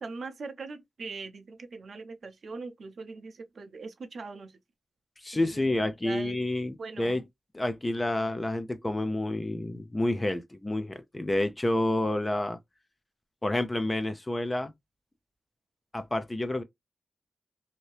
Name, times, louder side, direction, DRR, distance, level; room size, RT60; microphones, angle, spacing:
voice 1, 0.0-4.5 5.3-5.6 6.0-6.4 6.8-7.2, right 4 dB, 55° right, 0.6 m, -41 dB
voice 2, 5.2-7.2 7.5-12.6 13.4-14.7 15.9-16.6, left 1 dB, 15° left, 0.3 m, -29 dB
2.7 x 2.6 x 3.1 m
wide cardioid pair, 170°, 0 cm